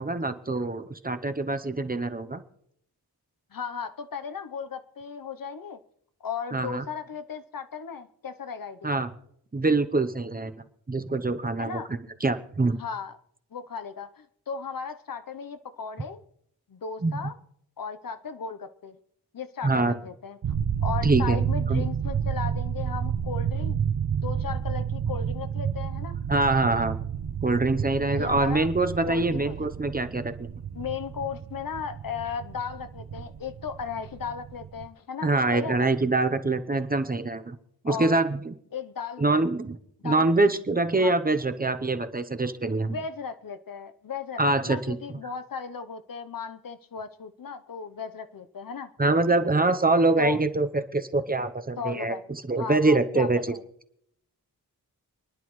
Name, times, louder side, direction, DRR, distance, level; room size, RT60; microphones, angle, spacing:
voice 1, 0.0-2.4 6.5-6.8 8.8-9.1 9.5-10.5 10.9-11.8 12.2-12.8 17.0-17.1 19.6-19.9 21.0-21.8 26.3-27.0 27.4-30.5 35.2-37.6 37.8-38.5 39.2-39.8 40.0-43.0 44.4-45.0 49.0-50.7 50.9-52.1 52.5-53.4, right 2 dB, 25° right, 9 dB, 0.7 m, -24 dB
voice 2, 3.5-5.8 6.2-9.0 11.6-11.9 12.8-13.2 13.5-16.2 16.7-17.4 17.8-19.0 19.3-20.4 20.8-23.8 24.2-26.2 28.1-28.7 29.0-29.7 30.7-35.9 37.8-38.3 38.7-39.3 40.0-40.3 41.0-41.2 42.8-48.9 50.2-50.4 51.8-52.2 52.6-53.6, left 6 dB, 60° left, 10 dB, 0.8 m, -36 dB
sound 1, 20.4-34.9, right 8 dB, 70° right, 0.9 m, -30 dB
28.5 x 10.5 x 3.1 m, 0.71 s
wide cardioid pair, 140°, 38 cm